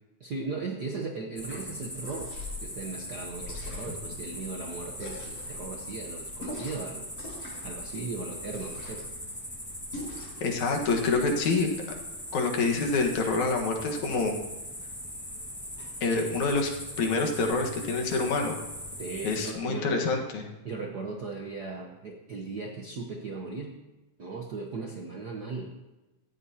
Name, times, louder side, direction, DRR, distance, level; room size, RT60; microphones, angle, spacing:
voice 1, 0.2-2.3 2.6-7.1 7.6-9.1 19.0-20.1 20.6-23.8 24.2-25.7, right 4 dB, 60° right, 1 dB, 1.0 m, -37 dB
sound 1, 1.4-19.5, equal, 5° left, 0.9 m, -40 dB
sound 2, 1.9-2.6 3.4-4.1 4.9-5.5 6.4-6.9 7.1-7.7 8.5-9.1 9.9-10.4, left 2 dB, 55° left, 5.8 m, -41 dB
voice 2, 10.4-11.8 12.3-14.4 16.0-16.7 17.0-18.6 19.2-20.4, left 3 dB, 80° left, 2 dB, 2.9 m, -27 dB
17.5 x 14.0 x 2.9 m, 1.1 s
omnidirectional pair, 3.3 m